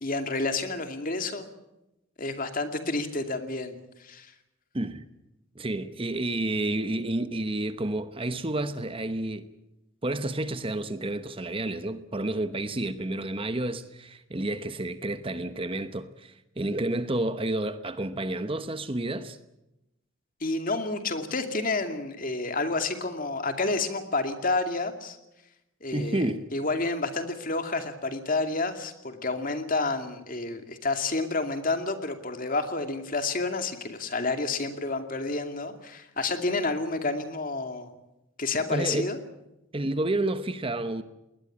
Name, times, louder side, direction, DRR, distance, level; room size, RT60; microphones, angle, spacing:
voice 1, 0.0-1.5 2.2-4.3 20.4-25.2 25.8-26.2 26.5-37.9 38.4-39.2, left 3 dB, 40° left, 2.5 m, -29 dB
voice 2, 4.7-5.0 5.5-9.5 10.0-19.4 25.9-26.4 38.7-39.1 39.7-41.0, right 1 dB, 25° right, 1.0 m, -30 dB
20.5 x 20.0 x 8.7 m
head